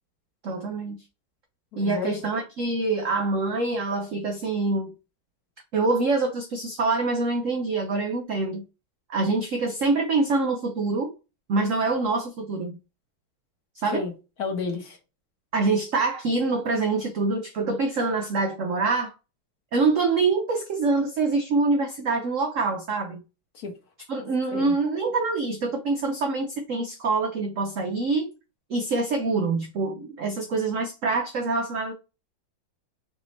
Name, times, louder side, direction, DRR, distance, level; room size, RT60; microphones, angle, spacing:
voice 1, 0.4-1.0 1.8-4.9 5.7-8.6 9.1-11.1 11.5-12.8 13.8-14.1 15.5-19.1 19.7-23.2 24.1-28.3 28.7-31.9, right 3 dB, 85° right, 0.7 m, -25 dB
voice 2, 1.7-2.2 13.9-14.1 14.4-15.0 23.5-23.7 24.5-24.7, left 4 dB, 55° left, 1.3 m, -31 dB
5.0 x 2.7 x 3.1 m
omnidirectional pair, 2.2 m